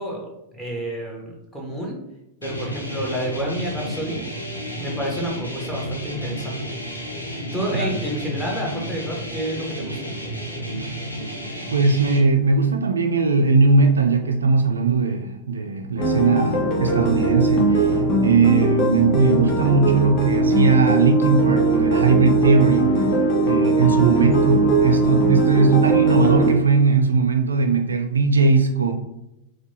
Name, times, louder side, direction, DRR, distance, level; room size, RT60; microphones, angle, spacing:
voice 1, 0.0-2.0 2.4-4.2 4.8-6.7 7.5-10.1, equal, 5° left, -3 dB, 1.1 m, -29 dB
sound 1, 2.4-12.2, equal, 85° left, 0.6 m, -32 dB
voice 2, 11.7-18.0 18.2-22.9 23.4-28.9, right 4 dB, 75° right, 4 dB, 0.3 m, -19 dB
sound 2, 16.0-26.5, right 2 dB, 35° left, 0.9 m, -20 dB
4.4 x 2.2 x 2.9 m, 0.87 s
figure-of-eight pair, 90°, 0 cm